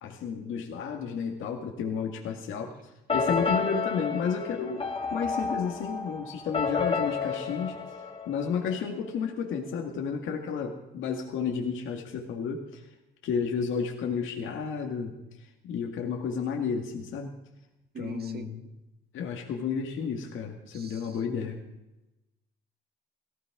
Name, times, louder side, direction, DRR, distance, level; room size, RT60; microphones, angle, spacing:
voice 1, 0.0-2.7 3.1-4.8 5.1-7.8 8.3-12.8 13.2-15.1 15.6-17.3 18.0-18.7 19.1-21.6, left 6 dB, 80° left, 2 dB, 2.0 m, -32 dB
sound 1, 3.1-8.8, left 5 dB, 30° left, 2.7 m, -31 dB
voice 2, 17.9-18.5 20.7-21.0, right 3 dB, 50° right, 7 dB, 1.9 m, -41 dB
18.0 x 15.5 x 4.8 m, 0.97 s
cardioid pair, 90°, 20 cm